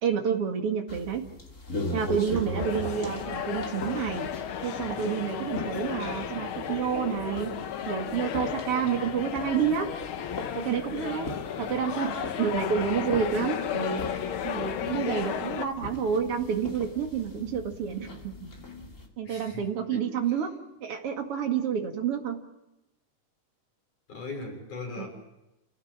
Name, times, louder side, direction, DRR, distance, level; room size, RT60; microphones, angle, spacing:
voice 1, 0.0-1.2 1.9-4.3 4.6-7.5 7.9-9.9 10.5-14.0 14.4-18.5 19.2-20.5 20.8-22.4 25.0-25.1, right 7 dB, 50° right, 4 dB, 2.8 m, -29 dB
sound 1, 0.9-19.1, left 1 dB, 25° left, 2.8 m, -40 dB
sound 2, 2.6-15.7, left 9 dB, 65° left, 1.4 m, -34 dB
voice 2, 12.7-13.1 19.2-19.6 19.9-20.1 24.1-25.1, left 3 dB, 85° left, 1 dB, 7.2 m, -39 dB
30.0 x 16.0 x 7.4 m, 0.95 s
omnidirectional pair, 3.5 m